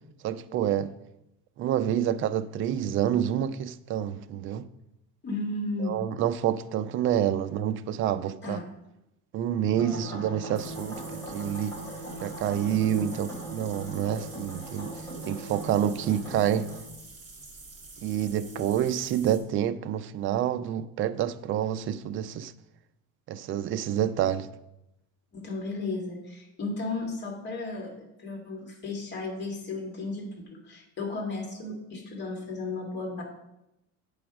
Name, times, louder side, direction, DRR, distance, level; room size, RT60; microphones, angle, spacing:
voice 1, 0.2-0.9 1.6-4.7 5.8-8.6 9.3-11.8 12.2-14.9 15.3-16.7 18.0-22.5 23.3-24.5, right 10 dB, 40° right, 0.4 m, -28 dB
voice 2, 5.2-6.2 8.4-8.6 9.9-10.1 12.9-13.2 18.4-18.6 25.3-33.2, left 3 dB, 35° left, 2.0 m, -35 dB
sound 1, 9.8-16.8, right 1 dB, 10° left, 3.4 m, -39 dB
sound 2, 10.5-19.4, right 3 dB, 25° right, 3.2 m, -47 dB
8.6 x 4.9 x 6.0 m
cardioid pair, 145°, 31 cm